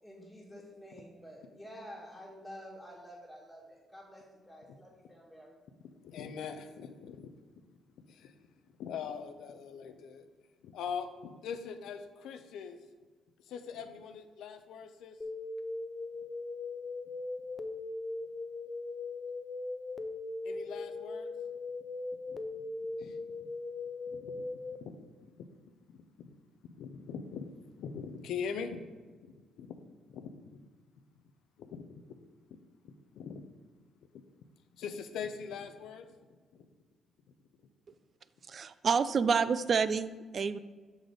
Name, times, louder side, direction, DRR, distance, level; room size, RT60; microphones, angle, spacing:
voice 1, 0.0-5.5, equal, 5° left, -8 dB, 1.8 m, -50 dB
voice 2, 6.0-7.3 8.1-8.3 8.8-10.3 10.6-12.8 13.4-15.2 20.4-21.3 22.3-22.4 23.0-23.5 24.1-24.5 24.8-25.0 25.4-25.5 25.9-26.4 26.8-27.5 27.8-28.9 29.4-29.8 30.1-30.6 31.6-32.2 32.8-33.4 34.7-36.1 36.5-36.6, left 6 dB, 80° left, 8 dB, 0.5 m, -42 dB
sound 1, 15.2-24.8, left 3 dB, 30° left, 0.5 m, -39 dB
voice 3, 38.5-40.6, right 5 dB, 45° right, 14 dB, 0.3 m, -28 dB
6.4 x 3.9 x 4.9 m, 1.4 s
cardioid pair, 90°, 0 cm